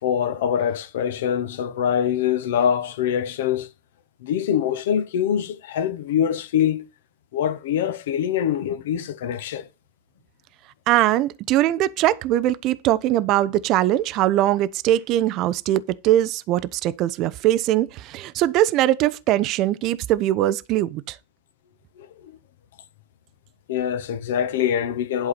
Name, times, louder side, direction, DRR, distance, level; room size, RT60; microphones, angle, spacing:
voice 1, 0.0-3.7 4.2-6.9 7.3-9.7 22.0-22.1 23.7-25.3, left 9 dB, 55° left, 1.2 m, -24 dB
voice 2, 10.9-21.2, right 13 dB, 40° right, 0.7 m, -21 dB
11.0 x 4.8 x 5.7 m
figure-of-eight pair, 90°, 0 cm